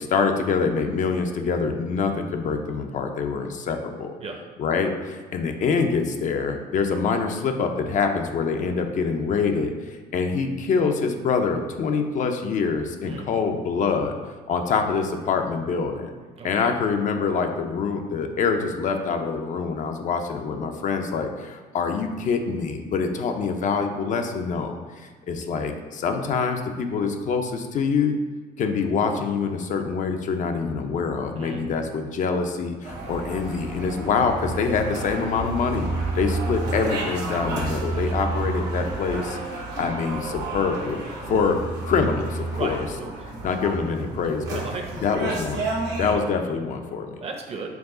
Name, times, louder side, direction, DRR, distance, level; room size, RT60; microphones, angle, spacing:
voice 1, 0.0-4.1 4.6-14.1 14.5-16.1 16.4-28.2 28.6-35.9 36.2-39.4 39.8-41.0 41.3-42.9 43.4-44.6 45.0-45.6 46.0-47.2, left 5 dB, 50° left, 5 dB, 0.4 m, -25 dB
voice 2, 16.4-16.8 31.3-31.6 38.1-38.3 42.5-43.1 44.5-45.2 46.1-46.4 47.2-47.7, right 3 dB, 35° right, 3 dB, 0.6 m, -35 dB
sound 1, 32.8-46.1, right 2 dB, 80° right, 0.9 m, -30 dB
4.6 x 2.3 x 3.7 m, 1.5 s
cardioid pair, 110°, 17 cm